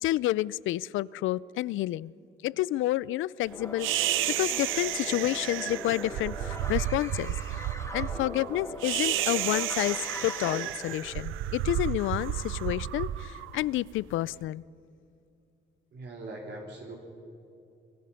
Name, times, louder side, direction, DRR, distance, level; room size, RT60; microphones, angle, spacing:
voice 1, 0.0-2.1 2.4-7.6 7.9-14.6, left 15 dB, 80° left, 22 dB, 0.5 m, -30 dB
sound 1, 3.5-11.2, left 1 dB, 15° left, 2.6 m, -40 dB
sound 2, 3.8-14.2, right 13 dB, 90° right, 0.7 m, -32 dB
voice 2, 15.9-17.0, right 2 dB, 60° right, -2 dB, 3.8 m, -41 dB
25.5 x 23.0 x 5.7 m, 2.6 s
cardioid pair, 90°, 20 cm